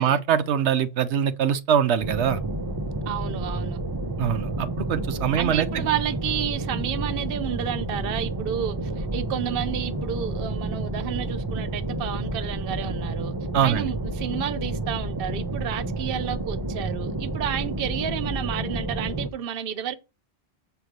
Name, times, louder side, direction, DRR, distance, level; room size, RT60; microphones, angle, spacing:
voice 1, 0.0-2.4 4.2-5.7 13.5-13.9, right 8 dB, 85° right, 1.0 m, -23 dB
sound 1, 2.0-19.3, right 2 dB, 25° right, 0.6 m, -30 dB
voice 2, 3.1-3.8 5.4-13.3 13.6-20.0, right 9 dB, 60° right, 0.9 m, -31 dB
7.2 x 4.7 x 5.1 m
omnidirectional pair, 1.1 m